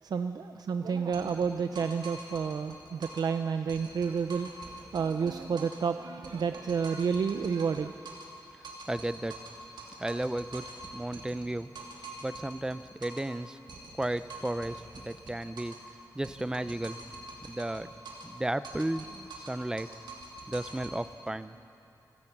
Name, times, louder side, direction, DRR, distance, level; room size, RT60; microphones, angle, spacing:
voice 1, 0.0-7.9, right 6 dB, 65° right, 8 dB, 0.5 m, -30 dB
sound 1, 1.1-3.3 3.7-5.9 6.2-8.4 8.6-13.3 13.7-15.9 16.2-18.4 18.6-21.0, right 2 dB, 85° right, 3.1 m, -46 dB
voice 2, 8.9-9.3 10.0-10.6 10.9-11.7 12.2-13.6 14.0-15.8 16.1-17.0 17.4-17.9 18.2-19.9 20.5-21.5, right 1 dB, 10° right, 13 dB, 0.5 m, -34 dB
29.5 x 17.0 x 6.0 m, 2.7 s
wide cardioid pair, 170°, 7 cm